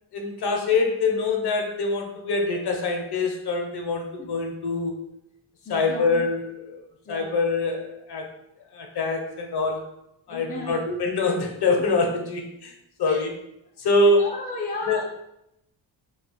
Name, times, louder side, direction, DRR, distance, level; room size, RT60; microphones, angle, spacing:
voice 1, 0.1-5.1 5.7-8.3 8.7-9.9 10.3-12.7 13.0-13.3 13.8-14.3 14.9-15.1, left 3 dB, 55° left, 3 dB, 0.7 m, -24 dB
voice 2, 5.7-6.2 7.1-7.3 10.3-10.8 13.1-13.2 14.2-15.1, left 3 dB, 20° left, -1 dB, 0.4 m, -34 dB
3.2 x 2.3 x 4.0 m, 0.82 s
wide cardioid pair, 130°, 48 cm